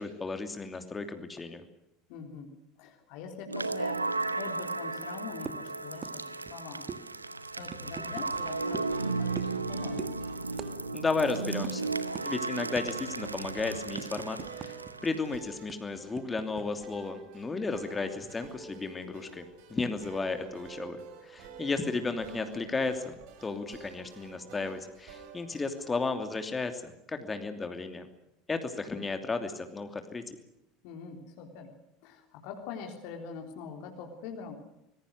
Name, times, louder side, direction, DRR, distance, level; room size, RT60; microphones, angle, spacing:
voice 1, 0.0-1.6 10.9-11.9 12.2-14.8 15.0-19.4 19.7-23.1 23.4-28.1 28.5-30.2, left 3 dB, 20° left, 7 dB, 2.9 m, -34 dB
voice 2, 2.1-2.5 2.8-4.0 4.4-6.2 6.5-6.8 7.6-10.2 30.8-31.7 32.0-34.5, left 6 dB, 55° left, 3 dB, 3.6 m, -43 dB
sound 1, 3.5-15.4, right 3 dB, 85° right, 1.0 m, -35 dB
sound 2, 5.5-5.7 6.0-6.2 6.4-6.6 6.9-7.0 7.7-8.3 8.7-8.9 9.4-9.6 10.0-10.1 10.6-10.7 11.0-11.2 11.6-11.7 12.1-12.3 12.8-13.0 13.4-14.9 15.2-15.3 15.7-16.6, right 7 dB, 35° right, 1.9 m, -41 dB
sound 3, 8.1-26.0, right 5 dB, 55° right, 5.0 m, -50 dB
25.5 x 21.5 x 6.4 m, 0.85 s
figure-of-eight pair, 75°, 0 cm